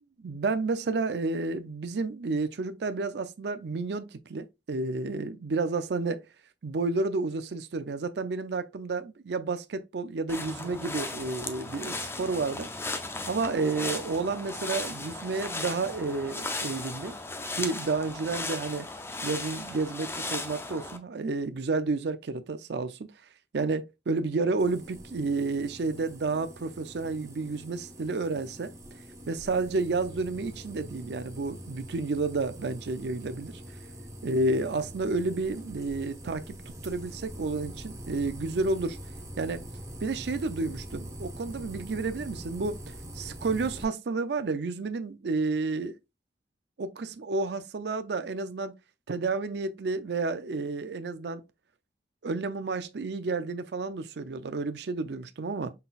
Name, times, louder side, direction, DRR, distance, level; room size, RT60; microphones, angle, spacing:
voice 1, 0.2-6.3 6.6-12.7 13.3-17.2 17.5-18.9 19.2-23.1 23.5-28.7 29.3-33.6 34.2-36.6 36.8-39.0 39.4-39.7 40.0-46.0 46.8-48.7 49.1-51.5 52.2-55.7, right 3 dB, 70° right, 0.5 m, -31 dB
sound 1, 10.3-21.0, left 2 dB, 15° left, 0.5 m, -36 dB
sound 2, 24.6-43.8, right 1 dB, 20° right, 0.8 m, -44 dB
5.5 x 3.9 x 2.4 m
head